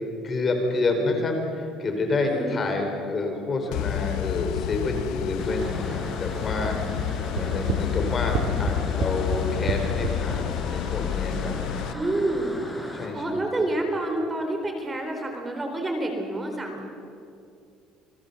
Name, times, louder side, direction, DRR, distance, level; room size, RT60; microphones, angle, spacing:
voice 1, 0.2-6.8 7.3-11.6 13.0-13.4, left 2 dB, 30° left, 3 dB, 4.6 m, -28 dB
voice 2, 2.2-2.6 11.9-12.5 13.1-16.9, right 1 dB, 20° right, 4 dB, 3.8 m, -28 dB
sound 1, 3.7-11.9, left 12 dB, 75° left, 0.9 m, -29 dB
sound 2, 5.4-13.1, left 1 dB, 5° left, 5.2 m, -37 dB
sound 3, 7.4-10.2, right 10 dB, 80° right, 1.7 m, -28 dB
28.5 x 20.5 x 7.2 m, 2.5 s
cardioid pair, 120°, 0 cm